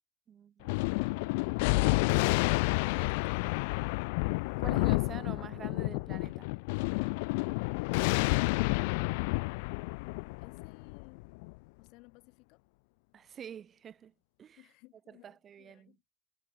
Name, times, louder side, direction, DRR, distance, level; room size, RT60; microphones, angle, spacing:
voice 1, 0.3-2.0 4.6-6.5 13.1-14.1 14.4-14.6 15.1-15.9, right 8 dB, 25° right, 5.0 m, -48 dB
Thunder, 0.6-11.5, left 28 dB, 70° left, 0.4 m, -30 dB
voice 2, 10.4-11.3 11.8-12.6 14.6-16.0, left 25 dB, 55° left, 7.4 m, -58 dB
cardioid pair, 165°, 0 cm